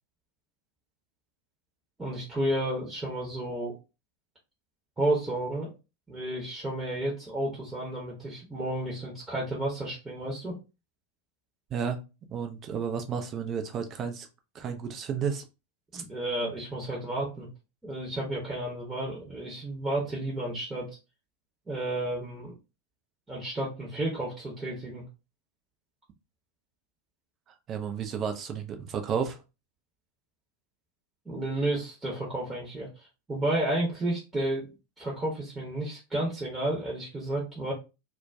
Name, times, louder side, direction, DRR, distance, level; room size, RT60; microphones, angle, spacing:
voice 1, 2.0-3.7 5.0-5.7 6.1-10.6 15.9-17.5 17.8-20.9 21.7-22.5 23.3-25.0 31.3-37.7, right 1 dB, 10° right, -4 dB, 0.8 m, -32 dB
voice 2, 12.3-14.3 14.5-15.4 15.9-16.0 27.7-29.4, right 7 dB, 30° right, 6 dB, 0.4 m, -32 dB
2.3 x 2.2 x 2.5 m, 0.28 s
figure-of-eight pair, 90°, 0 cm